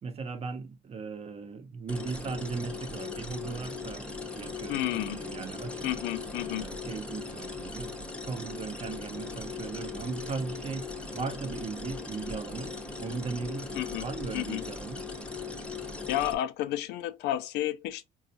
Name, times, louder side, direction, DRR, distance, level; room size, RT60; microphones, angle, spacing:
voice 1, 0.0-4.1 4.3-5.9 6.4-8.0 8.3-15.0, right 4 dB, 35° right, 0.7 m, -38 dB
sound 1, 1.9-16.3, left 4 dB, 5° left, 0.6 m, -39 dB
voice 2, 4.7-5.2 5.8-6.7 13.7-14.1 14.3-14.6 16.1-18.0, left 13 dB, 85° left, 0.5 m, -31 dB
4.2 x 2.4 x 2.6 m
cardioid pair, 110°, 17 cm